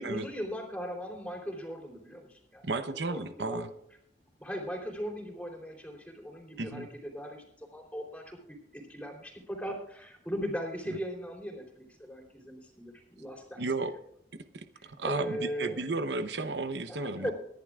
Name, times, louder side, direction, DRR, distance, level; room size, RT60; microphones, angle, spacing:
voice 1, 0.0-3.6 4.4-8.4 8.7-13.9 14.7-15.8 16.9-17.3, equal, 10° left, 0 dB, 3.5 m, -39 dB
voice 2, 2.6-3.7 6.6-6.9 13.6-13.9 14.3-17.3, right 3 dB, 85° right, 9 dB, 0.9 m, -33 dB
24.0 x 10.5 x 2.5 m, 0.73 s
head